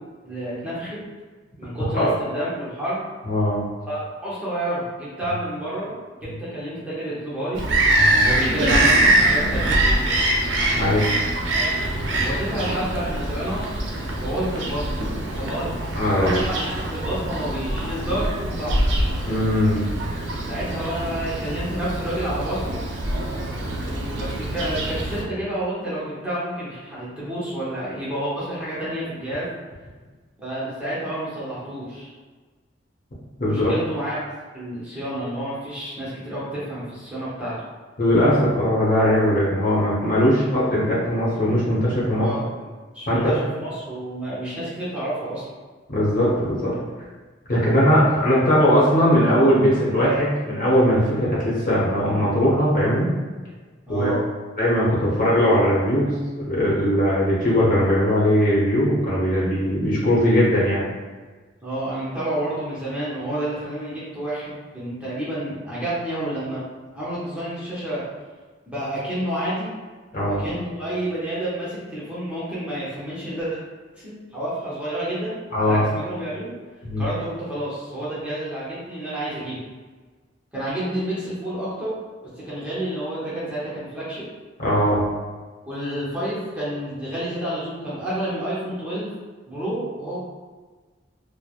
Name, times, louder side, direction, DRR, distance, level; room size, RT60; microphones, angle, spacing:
voice 1, 0.3-1.0 1.6-3.0 3.9-5.9 6.2-7.6 8.2-10.0 11.5-11.7 12.2-13.7 14.2-15.8 16.1-16.5 16.9-18.8 20.3-22.8 23.9-29.5 30.4-32.1 33.4-34.2 34.5-37.6 42.1-42.5 42.9-45.4 53.9-54.3 61.6-66.6 66.9-68.1 68.7-69.7 70.3-73.6 73.9-76.5 77.0-79.6 80.5-81.9 82.3-84.3 85.7-89.1 89.5-90.2, right 1 dB, 5° right, -10 dB, 0.7 m, -29 dB
voice 2, 3.2-3.7 6.2-6.3 7.9-8.2 10.8-11.1 15.9-16.4 19.3-19.9 33.4-33.7 38.0-42.3 43.1-43.3 45.9-46.8 47.5-53.1 53.9-54.1 54.6-56.1 56.4-60.8 70.1-70.5 75.5-75.8 76.8-77.0 84.6-85.0, equal, 50° left, -8 dB, 0.9 m, -20 dB
Bird vocalization bird call bird song, 7.5-25.2, right 1 dB, 80° right, 0.5 m, -23 dB
3.1 x 2.0 x 2.4 m, 1.4 s
head